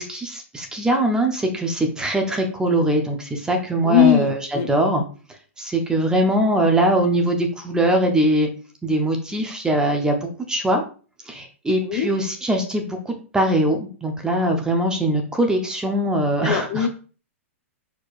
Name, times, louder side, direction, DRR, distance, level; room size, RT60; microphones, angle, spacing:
voice 1, 0.0-4.4 4.7-5.0 5.6-8.5 8.8-10.8 11.3-16.9, right 1 dB, 10° right, 3 dB, 0.7 m, -21 dB
voice 2, 3.8-4.3 4.5-4.7 11.8-12.1 16.4-16.9, left 11 dB, 40° left, 4 dB, 0.8 m, -19 dB
4.6 x 4.4 x 2.5 m, 0.38 s
hypercardioid pair, 120°, 7 cm